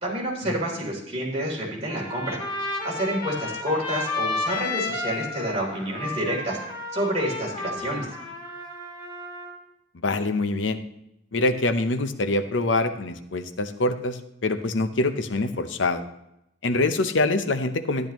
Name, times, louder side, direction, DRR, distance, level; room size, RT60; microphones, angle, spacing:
voice 1, 0.0-2.4 2.8-6.6 6.9-8.0, right 1 dB, 35° right, -3 dB, 3.4 m, -28 dB
Trumpet, 1.9-9.5, left 3 dB, 25° left, 1.9 m, -32 dB
voice 2, 10.0-10.8 11.3-16.0 16.6-18.1, left 2 dB, 85° left, 9 dB, 0.7 m, -25 dB
12.5 x 10.5 x 3.0 m, 0.82 s
head